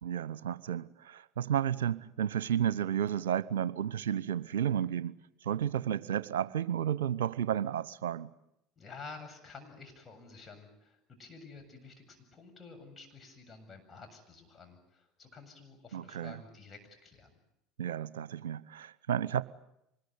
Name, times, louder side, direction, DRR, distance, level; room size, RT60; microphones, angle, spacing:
voice 1, 0.0-5.2 5.4-8.3 15.9-16.4 17.8-19.4, right 9 dB, 75° right, 17 dB, 0.9 m, -32 dB
voice 2, 8.8-17.3, left 4 dB, 25° left, 4 dB, 7.7 m, -51 dB
25.5 x 21.0 x 9.7 m, 0.82 s
hypercardioid pair, 75°, 0 cm